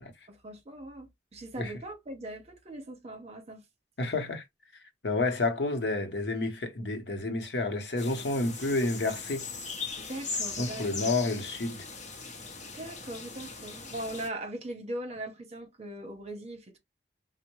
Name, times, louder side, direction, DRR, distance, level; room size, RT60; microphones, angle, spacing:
voice 1, 0.3-3.6 10.0-11.1 12.6-16.8, right 1 dB, 40° right, 0.9 m, -40 dB
voice 2, 4.0-4.4 5.0-9.4 10.6-11.8, left 2 dB, 70° left, 0.8 m, -30 dB
sound 1, 8.0-14.3, left 4 dB, 45° left, 0.8 m, -39 dB
4.3 x 2.1 x 3.0 m
head